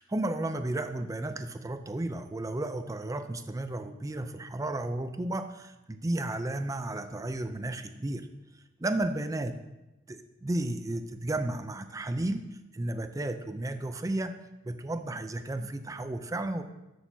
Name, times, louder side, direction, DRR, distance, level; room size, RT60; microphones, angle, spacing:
voice 1, 0.0-8.3 8.8-9.6 10.1-12.5 12.7-14.4 14.6-16.6, right 1 dB, 20° right, 9 dB, 0.4 m, -33 dB
13.0 x 6.4 x 2.7 m, 1.0 s
head